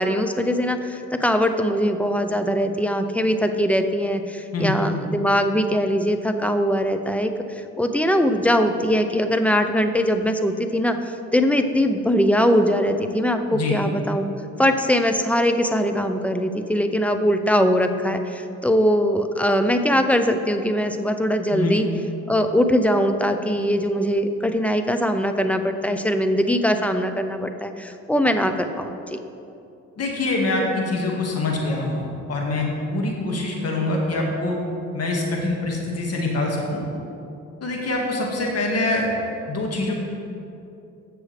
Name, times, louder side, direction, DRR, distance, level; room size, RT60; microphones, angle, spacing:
voice 1, 0.0-14.2 14.6-21.8 22.3-29.2, equal, 5° left, 7 dB, 0.6 m, -21 dB
voice 2, 30.0-34.6 34.9-36.8 37.6-39.1 39.5-39.9, left 2 dB, 55° left, -1 dB, 1.8 m, -24 dB
15.5 x 6.2 x 3.3 m, 2.7 s
cardioid pair, 90°, 30 cm